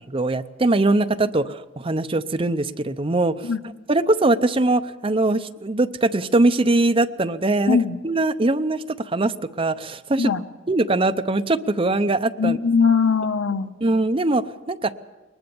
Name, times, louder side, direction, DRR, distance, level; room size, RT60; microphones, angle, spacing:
voice 1, 0.1-3.5 3.9-7.8 8.0-10.3 10.7-12.6 13.8-14.9, right 2 dB, 25° right, 11 dB, 0.7 m, -21 dB
voice 2, 7.7-8.0 10.2-10.4 12.4-13.7, left 5 dB, 80° left, 10 dB, 1.0 m, -20 dB
22.0 x 20.0 x 7.0 m, 1.2 s
head